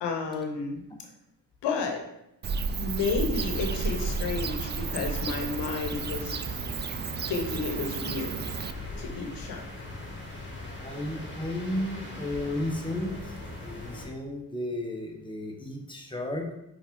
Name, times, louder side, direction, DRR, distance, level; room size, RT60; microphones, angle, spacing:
voice 1, 0.0-0.8 1.6-2.0 2.8-6.3 7.3-8.4 9.0-9.6, left 4 dB, 85° left, 3 dB, 1.1 m, -31 dB
Bird / Cricket, 2.4-8.7, right 5 dB, 25° right, 0.4 m, -32 dB
sound 1, 3.3-14.1, left 2 dB, 30° left, 2.1 m, -40 dB
voice 2, 10.8-13.2 13.5-16.5, left 1 dB, 10° left, 1 dB, 1.4 m, -33 dB
5.3 x 3.8 x 4.7 m, 0.83 s
supercardioid pair, 65°, 40 cm